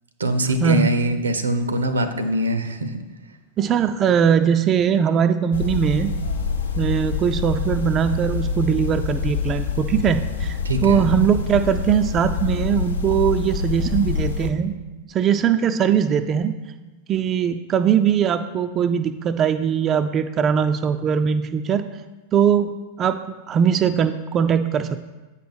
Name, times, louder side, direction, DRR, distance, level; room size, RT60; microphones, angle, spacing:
voice 1, 0.2-3.0 10.6-11.1, right 1 dB, 75° right, 10 dB, 0.6 m, -23 dB
voice 2, 3.6-6.2 6.8-14.8 15.1-16.6 17.1-21.9 22.3-25.0, right 8 dB, 30° right, 8 dB, 0.3 m, -20 dB
sound 1, 5.5-14.5, left 5 dB, 70° left, 0.6 m, -26 dB
8.4 x 5.6 x 4.0 m, 1.2 s
figure-of-eight pair, 90°, 0 cm